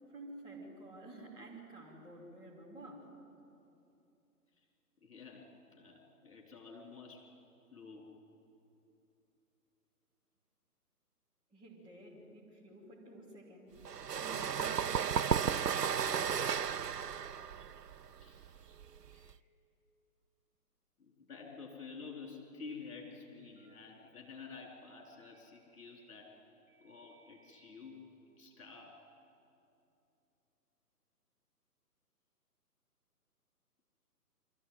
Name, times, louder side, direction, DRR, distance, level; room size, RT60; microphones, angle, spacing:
voice 1, 0.1-3.1 11.5-16.7, right 1 dB, 10° right, -7 dB, 3.0 m, -52 dB
voice 2, 5.0-7.3 7.7-8.1 18.2-18.6 19.1-19.3 21.0-26.4 26.8-29.0, left 4 dB, 55° left, 0 dB, 4.6 m, -50 dB
sound 1, 13.8-19.3, right 7 dB, 80° right, 0.7 m, -34 dB
Telephone, 18.7-19.2 22.2-22.7 23.6-23.9 25.1-25.4 26.7-27.7, right 4 dB, 5° left, 0.6 m, -67 dB
24.0 x 14.5 x 9.3 m, 2.7 s
figure-of-eight pair, 140°, 47 cm